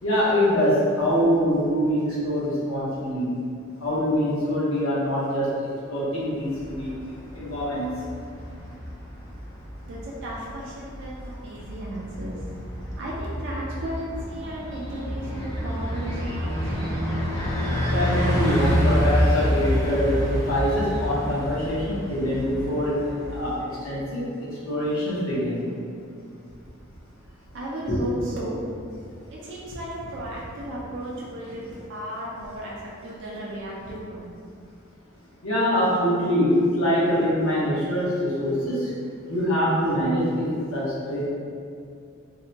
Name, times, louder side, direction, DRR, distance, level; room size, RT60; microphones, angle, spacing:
voice 1, 0.0-3.4 3.8-5.5 5.9-6.9 7.3-7.9 17.9-23.5 23.8-25.6 27.9-28.0 35.4-38.9 39.3-41.2, equal, 85° left, -8 dB, 0.9 m, -24 dB
Bus, 6.4-23.5, equal, 15° left, 0.5 m, -28 dB
voice 2, 9.9-12.6 13.0-16.9 27.5-28.6 29.3-34.3, right 1 dB, 60° right, -5 dB, 0.4 m, -35 dB
sound 1, 14.6-21.2, equal, 60° left, 0.8 m, -34 dB
2.7 x 2.1 x 2.7 m, 2.4 s
head